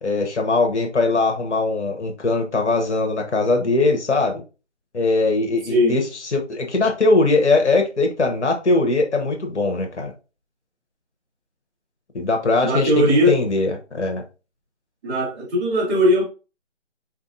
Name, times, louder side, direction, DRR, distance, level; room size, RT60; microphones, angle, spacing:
voice 1, 0.0-4.4 4.9-10.1 12.1-14.2, left 3 dB, 70° left, 1.0 m, -21 dB
voice 2, 12.6-13.4 15.0-16.2, equal, 5° right, 1.0 m, -19 dB
4.5 x 2.6 x 2.5 m
figure-of-eight pair, 160°, 36 cm